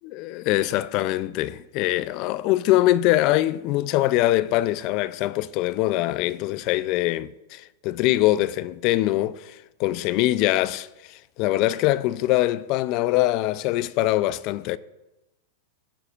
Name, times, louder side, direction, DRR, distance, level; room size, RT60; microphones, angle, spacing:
voice 1, 0.0-14.8, left 15 dB, 45° left, 0.4 m, -23 dB
16.0 x 6.9 x 2.4 m
supercardioid pair, 135°, 0 cm